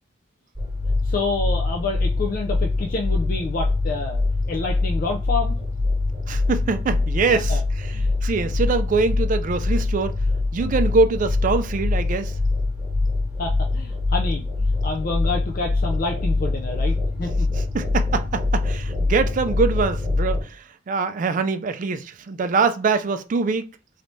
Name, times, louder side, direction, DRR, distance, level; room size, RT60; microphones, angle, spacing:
sound 1, 0.6-20.4, left 3 dB, 15° right, 1.2 m, -24 dB
voice 1, 1.0-4.2 4.5-5.6 7.3-7.6 7.9-8.1 13.4-17.5, left 3 dB, 45° left, 0.4 m, -28 dB
voice 2, 6.3-10.1 10.5-12.3 17.6-23.6, right 4 dB, 40° right, 0.3 m, -23 dB
3.2 x 2.6 x 3.1 m
head